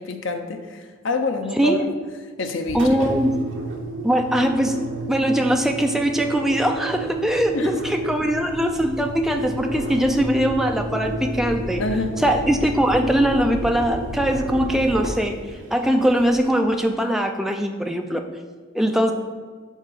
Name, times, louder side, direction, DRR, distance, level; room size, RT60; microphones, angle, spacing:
voice 1, 0.0-1.9 2.4-2.9 7.5-7.8 11.8-12.2, left 2 dB, 70° left, 6 dB, 0.7 m, -27 dB
Engine, 2.6-16.6, right 2 dB, 75° right, 0.8 m, -31 dB
voice 2, 2.7-3.4 4.0-4.8 5.1-11.8 12.2-15.4 15.7-18.2 18.7-19.1, equal, ahead, 4 dB, 0.4 m, -21 dB
5.5 x 4.1 x 6.0 m, 1.5 s
head